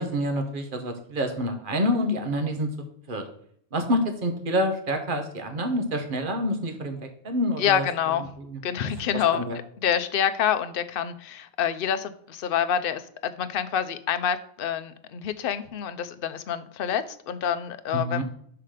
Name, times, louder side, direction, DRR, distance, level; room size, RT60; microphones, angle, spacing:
voice 1, 0.0-2.7 3.1-3.2 3.7-7.8 8.4-8.6 9.1-9.6 17.9-18.2, equal, 45° right, 6 dB, 1.2 m, -27 dB
voice 2, 7.6-8.2 8.6-9.5 9.8-18.2, left 9 dB, 60° left, 11 dB, 0.7 m, -27 dB
5.9 x 5.7 x 4.9 m, 0.65 s
omnidirectional pair, 1.2 m